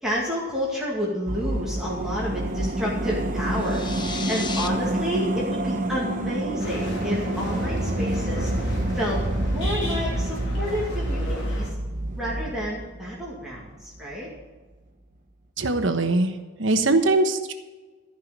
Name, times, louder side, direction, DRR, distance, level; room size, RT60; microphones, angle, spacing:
voice 1, 0.0-8.5 8.9-11.7 12.2-14.3, equal, 5° right, -6 dB, 2.2 m, -30 dB
sound 1, 1.3-13.7 13.9-14.0, right 1 dB, 45° right, 0.9 m, -28 dB
sound 2, 3.5-4.7, left 5 dB, 25° left, 0.7 m, -34 dB
sound 3, 6.6-11.7, left 1 dB, 60° left, 3.3 m, -36 dB
voice 2, 15.6-17.5, right 2 dB, 65° right, 6 dB, 1.2 m, -22 dB
14.0 x 5.8 x 8.8 m, 1.3 s
head